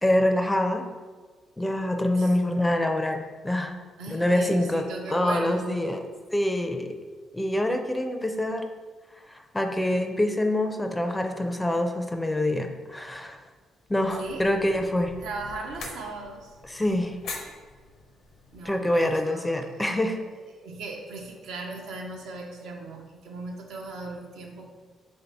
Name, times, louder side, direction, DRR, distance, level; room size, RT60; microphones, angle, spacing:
voice 1, 0.0-0.8 1.6-3.7 4.1-4.8 5.1-6.0 6.3-6.9 7.3-8.7 9.3-13.4 13.9-15.1 16.7-17.2 18.7-20.2, left 1 dB, 10° left, 5 dB, 0.4 m, -25 dB
voice 2, 4.0-5.8 14.2-14.4 15.2-16.6 18.5-19.7 20.0-20.2 20.6-24.7, right 3 dB, 85° right, 1 dB, 0.6 m, -38 dB
sound 1, 13.9-19.3, left 3 dB, 75° left, 0.6 m, -44 dB
3.2 x 2.7 x 4.5 m, 1.5 s
cardioid pair, 90°, 0 cm